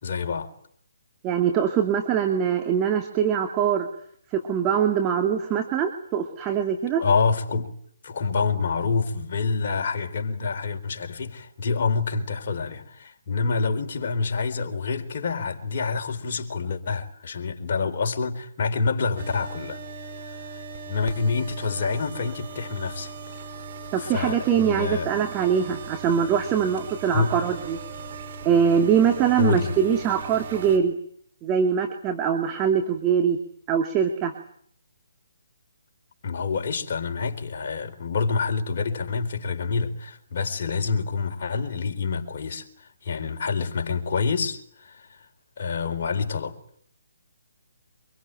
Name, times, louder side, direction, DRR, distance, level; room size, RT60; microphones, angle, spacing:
voice 1, 0.0-0.5 7.0-7.7 8.0-19.8 20.2-23.5 24.0-25.1 27.1-27.3 29.4-29.7 36.2-42.7 43.0-45.2 45.6-46.6, left 4 dB, 45° left, 4.1 m, -27 dB
voice 2, 1.2-3.9 4.3-7.0 23.9-27.8 28.4-30.9 31.4-33.4 33.7-34.3, right 7 dB, 20° right, 2.3 m, -23 dB
sound 1, 19.2-30.8, right 4 dB, 45° right, 4.2 m, -39 dB
25.0 x 22.5 x 9.2 m
figure-of-eight pair, 140°, 0 cm